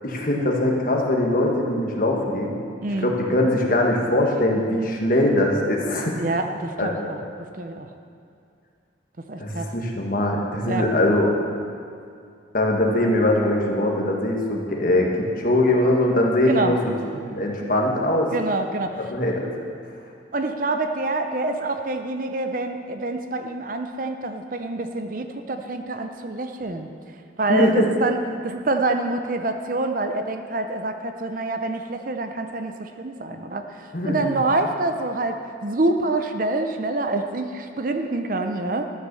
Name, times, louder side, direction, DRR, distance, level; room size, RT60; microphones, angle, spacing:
voice 1, 0.0-2.6 3.0-6.2 6.8-6.9 9.4-11.3 12.5-15.1 15.4-16.9 17.3-18.3 19.1-19.4 27.5-27.9 33.9-34.3, left 1 dB, 45° left, 0 dB, 1.4 m, -21 dB
voice 2, 2.8-3.1 6.2-7.2 7.6-7.9 9.3-9.7 10.6-10.9 16.5-16.7 18.3-19.0 20.3-26.9 27.4-28.2 28.4-35.4 35.6-38.9, right 2 dB, 45° right, 6 dB, 0.6 m, -26 dB
12.5 x 6.7 x 6.8 m, 2.4 s
head